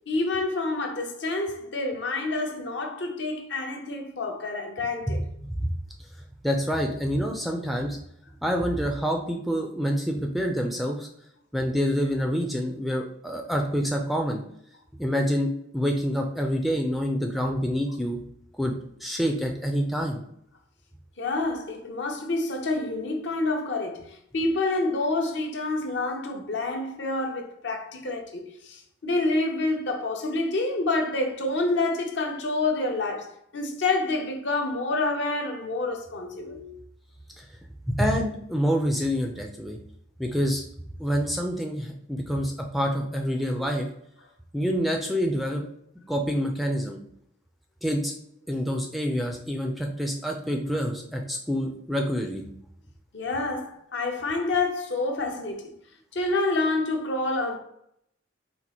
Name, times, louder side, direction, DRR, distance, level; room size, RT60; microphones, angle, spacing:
voice 1, 0.1-5.2 21.2-36.8 53.1-55.7 56.1-57.6, left 2 dB, 65° left, 0.8 m, -28 dB
voice 2, 6.4-8.0 8.4-11.1 11.5-14.4 15.0-18.2 18.6-18.7 19.0-20.2 37.4-37.5 37.9-39.8 40.2-40.6 41.0-43.9 44.5-45.6 46.1-47.0 47.8-48.1 48.5-52.4, equal, ahead, 0.4 m, -27 dB
4.3 x 2.5 x 4.1 m
head